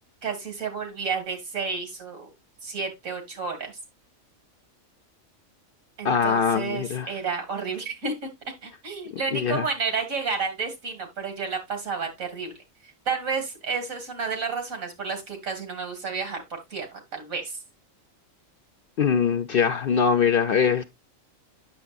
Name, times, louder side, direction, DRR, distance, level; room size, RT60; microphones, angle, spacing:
voice 1, 0.2-2.3 2.6-3.7 6.0-8.3 8.6-12.6 13.1-17.6, right 5 dB, 85° right, 2.5 m, -31 dB
voice 2, 6.0-7.1 9.3-9.6 19.0-20.8, left 6 dB, 60° left, 0.6 m, -22 dB
8.7 x 6.8 x 2.3 m
omnidirectional pair, 1.4 m